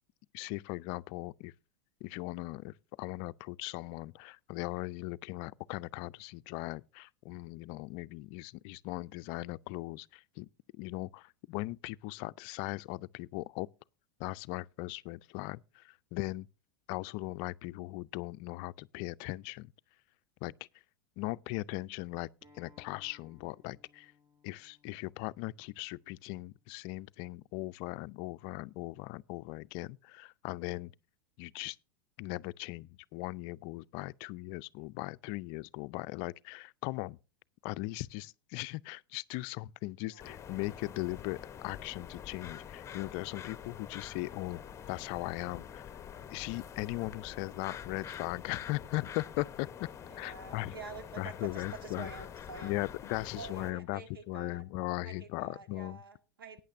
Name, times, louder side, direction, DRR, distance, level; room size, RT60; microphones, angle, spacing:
voice 1, 0.3-1.5 2.0-10.5 10.7-13.7 14.2-16.5 16.9-19.7 20.4-20.5 21.2-22.3 22.5-24.1 24.4-30.9 31.4-31.8 32.2-37.2 37.6-44.6 44.9-46.0 46.3-49.9 50.2-50.7 51.2-52.1 52.6-54.0 54.3-56.0, left 20 dB, 50° left, 0.4 m, -39 dB
Acoustic guitar, 22.4-27.6, left 2 dB, 40° right, 5.9 m, -66 dB
sound 1, 40.2-53.7, left 8 dB, 25° left, 0.8 m, -46 dB
voice 2, 50.1-52.9 53.4-54.7 55.0-56.6, right 5 dB, 85° right, 1.8 m, -48 dB
18.0 x 9.3 x 2.6 m
hypercardioid pair, 95°, 11 cm